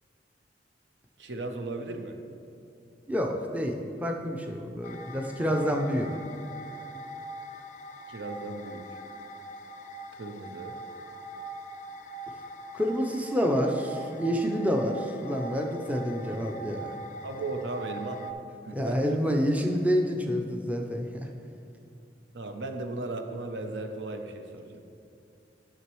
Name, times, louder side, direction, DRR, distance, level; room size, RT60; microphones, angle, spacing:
voice 1, 1.2-2.2 8.1-9.0 10.1-10.8 17.2-18.2 18.7-19.2 22.3-24.8, right 2 dB, 75° right, 5 dB, 0.6 m, -36 dB
voice 2, 3.1-6.1 12.7-16.9 18.7-21.3, equal, 10° right, 2 dB, 0.5 m, -28 dB
sound 1, 4.8-18.3, right 1 dB, 45° left, 0.4 m, -42 dB
11.0 x 6.0 x 3.1 m, 2.6 s
head